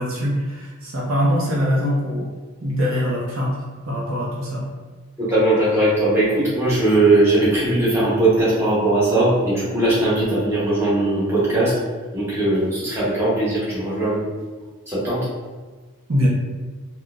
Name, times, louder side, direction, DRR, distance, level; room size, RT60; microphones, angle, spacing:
voice 1, 0.0-2.3 2.6-4.6 16.1-16.3, equal, 70° right, -4 dB, 0.7 m, -23 dB
voice 2, 5.2-11.8 12.1-14.2 14.9-15.3, right 2 dB, 10° right, -10 dB, 0.9 m, -19 dB
3.8 x 2.2 x 2.4 m, 1.4 s
head